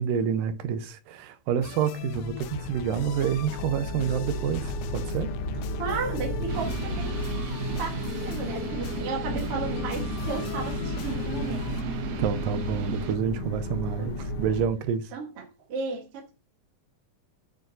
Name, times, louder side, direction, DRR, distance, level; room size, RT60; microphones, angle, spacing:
voice 1, 0.0-5.3 12.2-15.1, right 8 dB, 90° right, 2.6 m, -28 dB
sound 1, 1.6-11.8, left 9 dB, 85° left, 2.4 m, -39 dB
sound 2, 1.9-14.7, left 1 dB, 50° left, 2.0 m, -34 dB
voice 2, 5.7-7.2 7.7-12.0 14.0-14.3 15.1-16.3, right 4 dB, 50° right, 2.5 m, -34 dB
sound 3, 6.5-13.2, right 6 dB, 65° right, 1.8 m, -37 dB
8.8 x 6.6 x 4.1 m
omnidirectional pair, 3.8 m